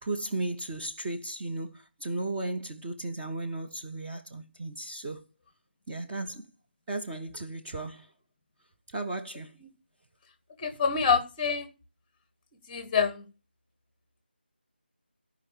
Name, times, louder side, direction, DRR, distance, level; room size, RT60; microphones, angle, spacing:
voice 1, 0.0-5.2 5.9-6.5 6.9-8.1 8.9-9.6, right 2 dB, 10° right, 0.6 m, -35 dB
voice 2, 10.6-11.7 12.7-13.2, left 6 dB, 15° left, 1.0 m, -26 dB
14.5 x 5.0 x 6.9 m
figure-of-eight pair, 160°, 6 cm